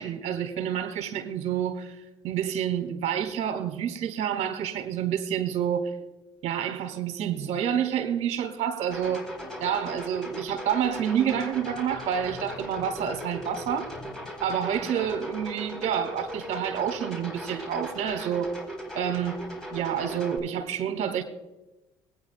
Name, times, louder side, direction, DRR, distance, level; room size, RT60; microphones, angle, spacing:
voice 1, 0.0-6.0 6.4-9.3 9.6-13.9 14.4-18.6 18.9-19.5 19.7-21.2, right 8 dB, 60° right, 2.0 m, -28 dB
sound 1, 8.9-20.4, equal, 5° left, 4.0 m, -38 dB
20.5 x 9.5 x 2.2 m
hypercardioid pair, 55°, 13 cm